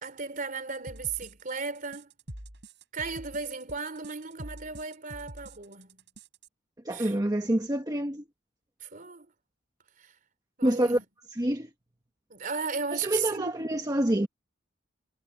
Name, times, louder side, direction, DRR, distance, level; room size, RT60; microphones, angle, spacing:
voice 1, 0.0-2.1 2.9-6.0 6.9-7.1 8.8-9.3 10.0-10.1 10.6-11.0 12.3-13.5, right 5 dB, 45° right, 3.6 m, -35 dB
sound 1, 0.9-6.5, right 1 dB, 65° right, 5.7 m, -46 dB
voice 2, 6.8-8.2 10.6-11.0 11.4-11.7 13.0-14.3, right 1 dB, 20° right, 1.3 m, -27 dB
head